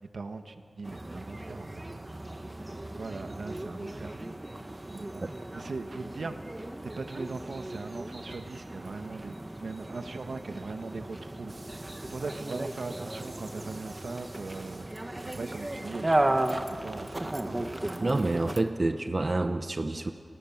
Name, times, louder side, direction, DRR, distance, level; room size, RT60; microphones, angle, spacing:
voice 1, 0.1-2.0 2.9-4.2 4.9-5.2 5.5-6.4 6.8-11.5 12.0-14.9 15.3-16.3 16.7-17.7, right 3 dB, 80° right, 7 dB, 1.6 m, -39 dB
sound 1, 0.8-18.6, right 1 dB, 25° right, 1.4 m, -35 dB
sound 2, 11.5-16.5, right 2 dB, 60° right, 5.1 m, -53 dB
voice 2, 18.0-20.1, right 2 dB, 40° right, 8 dB, 1.0 m, -28 dB
29.0 x 28.0 x 7.4 m, 2.7 s
wide cardioid pair, 90°, 0 cm